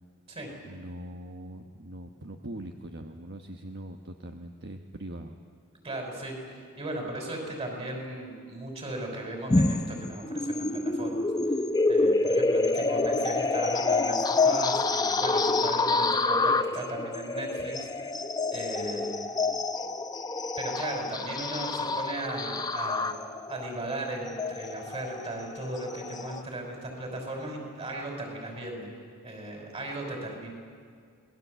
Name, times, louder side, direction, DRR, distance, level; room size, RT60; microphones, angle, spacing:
voice 1, 0.6-5.4, right 1 dB, 50° right, 4 dB, 1.2 m, -42 dB
voice 2, 5.8-6.3 6.8-11.2 11.9-18.2 18.5-19.3 20.6-23.1 23.5-28.9 29.2-30.5, right 1 dB, 30° right, 1 dB, 5.7 m, -37 dB
sound 1, 9.5-26.4, left 3 dB, 20° left, 0.7 m, -27 dB
27.0 x 20.0 x 8.1 m, 2.1 s
head